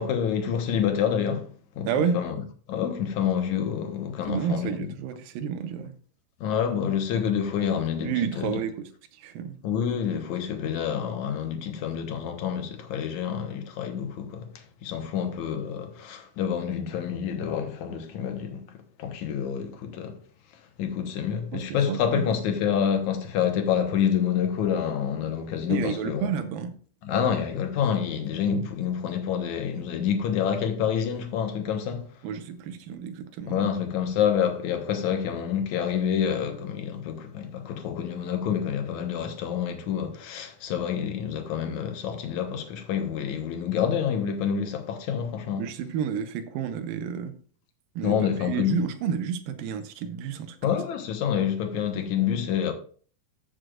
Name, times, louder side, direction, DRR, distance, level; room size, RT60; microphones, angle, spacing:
voice 1, 0.0-1.5 1.8-1.9 2.1-2.3 2.7-4.7 6.4-8.6 9.6-20.2 20.8-26.3 27.0-32.1 33.5-45.6 48.0-48.7 50.6-52.7, left 8 dB, 65° left, 2.2 m, -27 dB
voice 2, 1.9-2.2 4.3-5.9 8.0-9.6 21.5-22.3 25.7-26.8 32.2-33.6 45.6-47.4 48.0-50.8, right 7 dB, 85° right, 2.6 m, -30 dB
14.0 x 6.2 x 2.5 m
omnidirectional pair, 4.0 m